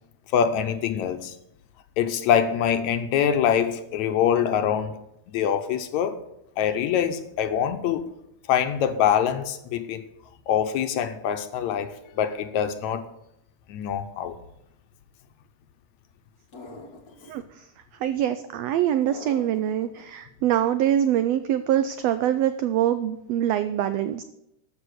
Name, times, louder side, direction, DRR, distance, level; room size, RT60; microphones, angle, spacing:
voice 1, 0.3-1.3 2.0-5.0 5.3-6.2 6.6-8.1 8.5-10.0 10.5-13.1 13.7-14.3, left 8 dB, 75° left, 2.0 m, -24 dB
sound 1, 16.5-17.4 19.1-20.0, left 2 dB, 50° left, 1.1 m, -43 dB
voice 2, 18.0-24.2, right 11 dB, 90° right, 1.4 m, -24 dB
13.0 x 5.9 x 6.4 m
omnidirectional pair, 3.5 m